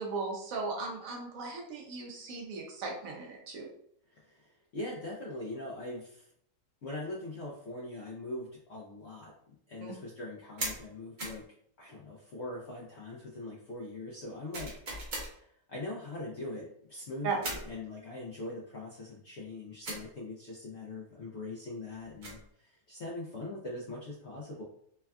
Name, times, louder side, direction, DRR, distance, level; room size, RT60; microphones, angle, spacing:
voice 1, 0.0-3.7 9.8-9.9 17.2-17.4, right 4 dB, 70° right, 0 dB, 0.9 m, -37 dB
voice 2, 4.1-6.3 6.8-11.4 11.8-14.7 15.1-24.6, left 2 dB, 70° left, -4 dB, 0.6 m, -42 dB
sound 1, 10.6-10.8 11.2-11.4 14.5-15.3 17.4-17.7 19.8-20.1 22.0-22.5, right 1 dB, 50° right, 0.6 m, -38 dB
3.3 x 2.3 x 2.2 m, 0.66 s
omnidirectional pair, 1.7 m